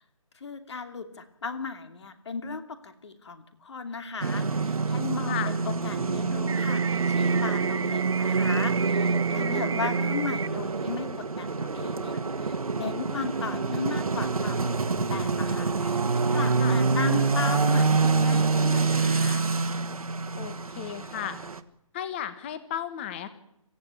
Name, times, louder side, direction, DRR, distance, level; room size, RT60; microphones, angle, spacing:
voice 1, 0.3-16.0 16.3-19.4, left 5 dB, 50° left, 8 dB, 2.7 m, -36 dB
sound 1, 4.2-21.6, right 4 dB, 85° right, 1.8 m, -26 dB
sound 2, 5.8-7.4, right 1 dB, 5° left, 1.6 m, -44 dB
sound 3, 6.5-10.5, right 6 dB, 55° right, 1.0 m, -34 dB
voice 2, 9.3-9.8 16.6-16.8 20.3-21.4 21.9-23.3, left 10 dB, 20° left, 12 dB, 1.4 m, -34 dB
26.0 x 15.5 x 8.5 m, 0.79 s
hypercardioid pair, 165°, 18 cm